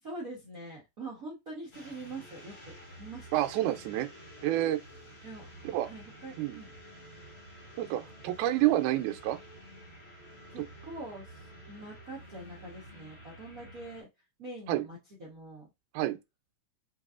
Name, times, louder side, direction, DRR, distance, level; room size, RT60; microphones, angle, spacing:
voice 1, 0.0-3.3 5.2-5.5 5.8-6.7 7.9-8.3 10.5-14.1 14.4-15.7, right 2 dB, 70° right, 0.8 m, -44 dB
sound 1, 1.7-14.0, equal, 45° left, 0.8 m, -51 dB
voice 2, 3.3-4.1 4.4-4.8 5.7-5.9 6.4-6.6 7.8-9.4 14.7-14.8 15.9-16.2, right 14 dB, 90° right, 2.0 m, -28 dB
5.4 x 2.6 x 2.4 m
omnidirectional pair, 3.5 m